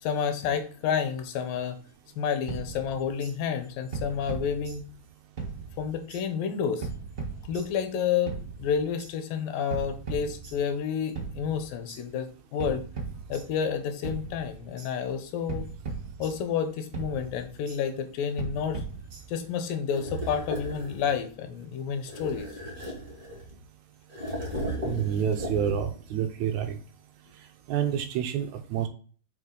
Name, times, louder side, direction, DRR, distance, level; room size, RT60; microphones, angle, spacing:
voice 1, 0.0-1.8 2.2-4.8 5.8-6.9 7.4-12.9 13.3-15.7 16.2-18.8 19.3-22.5, left 7 dB, 80° left, 8 dB, 2.6 m, -30 dB
sound 1, 2.5-3.3 3.9-5.1 5.4-6.2 6.8-7.9 8.3-9.1 9.7-10.9 11.2-12.0 12.6-13.8 14.0-14.9 15.5-16.7 16.9-17.8 18.4-19.5, right 4 dB, 55° right, 0.8 m, -38 dB
sound 2, 19.9-21.3 22.1-23.6 24.1-26.1, equal, 20° right, 1.8 m, -36 dB
voice 2, 24.8-26.8 27.7-28.9, right 9 dB, 80° right, 6 dB, 1.7 m, -28 dB
6.1 x 5.1 x 3.8 m, 0.43 s
omnidirectional pair, 4.0 m